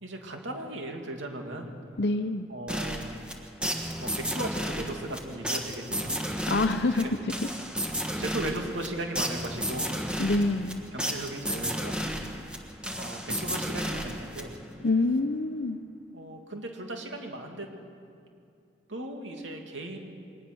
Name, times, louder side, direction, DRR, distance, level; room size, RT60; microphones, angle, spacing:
voice 1, 0.0-1.7 2.5-3.1 4.0-6.5 6.8-7.1 8.2-9.9 10.3-10.4 10.9-12.2 13.0-14.5 16.1-17.7 18.9-20.0, right 1 dB, 90° right, 2 dB, 2.7 m, -37 dB
voice 2, 2.0-2.5 6.5-7.1 10.2-10.8 14.8-15.8, left 2 dB, 60° left, 8 dB, 0.8 m, -26 dB
sound 1, 2.7-14.8, equal, 5° right, 1.4 m, -33 dB
22.5 x 19.5 x 6.3 m, 2.6 s
head